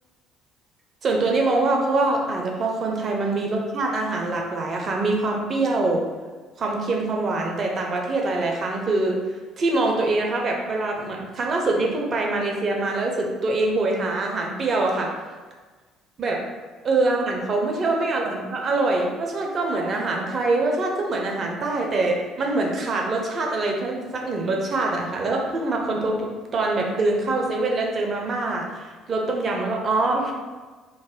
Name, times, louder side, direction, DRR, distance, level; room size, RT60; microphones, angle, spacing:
voice 1, 1.0-6.0 6.6-9.2 9.6-15.1 16.2-16.4 16.8-30.3, right 2 dB, 40° right, 0 dB, 0.5 m, -24 dB
2.4 x 2.1 x 3.6 m, 1.4 s
figure-of-eight pair, 55°, 0 cm